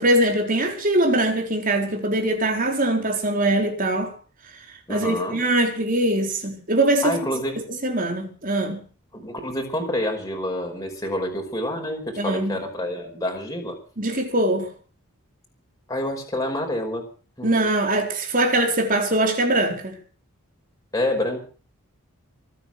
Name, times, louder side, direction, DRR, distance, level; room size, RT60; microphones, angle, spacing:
voice 1, 0.0-4.1 4.9-7.2 7.8-8.8 12.2-12.6 14.0-14.7 17.4-20.0, right 1 dB, 40° right, 4.4 m, -22 dB
voice 2, 4.9-5.4 7.0-7.6 9.1-13.8 15.9-17.1 17.4-17.6 20.9-21.4, left 1 dB, 15° left, 5.3 m, -28 dB
24.5 x 9.4 x 6.3 m
head